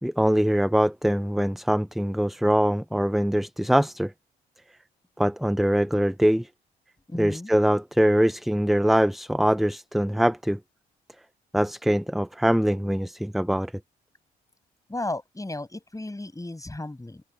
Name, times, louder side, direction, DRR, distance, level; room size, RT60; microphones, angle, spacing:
voice 1, 0.0-4.1 5.2-6.5 7.2-10.6 11.5-13.7, equal, ahead, 0.7 m, -23 dB
voice 2, 7.1-7.5 14.9-17.2, left 2 dB, 15° left, 6.4 m, -34 dB
open air
hypercardioid pair, 50°, 21 cm